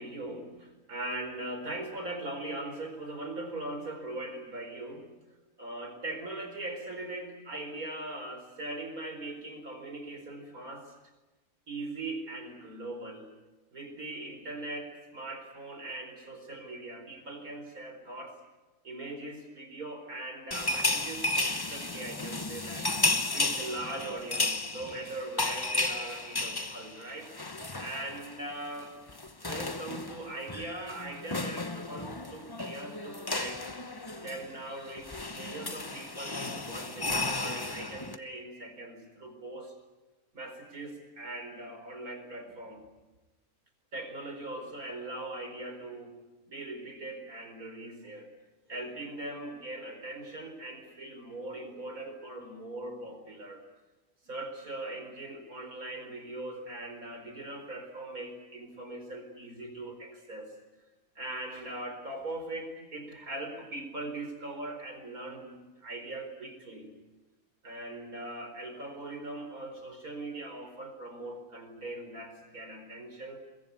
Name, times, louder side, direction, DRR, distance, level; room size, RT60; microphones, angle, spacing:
voice 1, 0.0-5.1 5.6-10.9 11.7-13.3 13.7-18.4 18.8-23.0 23.3-27.3 27.8-33.7 34.2-39.7 40.3-42.8 43.9-46.1 46.5-48.3 48.7-53.6 54.2-60.5 61.1-66.9 67.6-73.4, right 2 dB, 70° right, 6 dB, 4.9 m, -40 dB
sound 1, 20.5-28.4 28.6-28.8 29.1-38.2, left 2 dB, 20° left, 0.9 m, -33 dB
23.0 x 22.5 x 9.6 m, 1.1 s
omnidirectional pair, 1.6 m